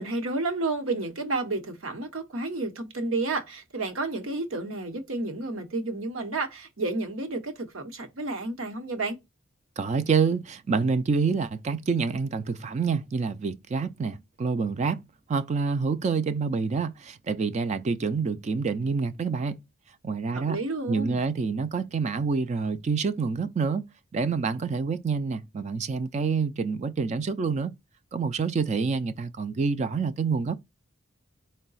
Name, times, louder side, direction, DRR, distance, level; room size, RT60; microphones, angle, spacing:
voice 1, 0.0-9.2 20.3-21.2, right 2 dB, 80° right, 0.9 m, -31 dB
voice 2, 9.8-15.0 15.3-19.6 20.0-20.6 20.9-23.9 24.1-27.7 28.1-30.6, right 5 dB, 35° right, 0.3 m, -27 dB
4.6 x 2.1 x 3.9 m
head